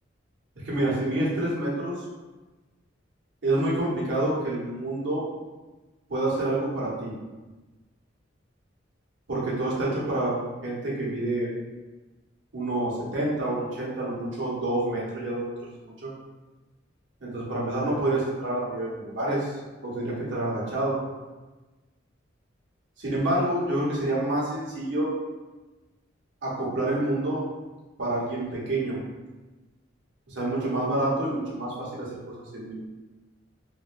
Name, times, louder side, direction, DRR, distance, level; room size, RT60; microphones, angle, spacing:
voice 1, 0.6-1.9 3.4-5.3 6.1-7.1 9.3-11.5 12.5-16.1 17.2-19.5 19.8-21.0 23.0-25.1 26.4-27.4 28.0-29.0 30.3-32.8, right 1 dB, 65° right, -6 dB, 0.9 m, -28 dB
3.0 x 2.5 x 2.4 m, 1.2 s
head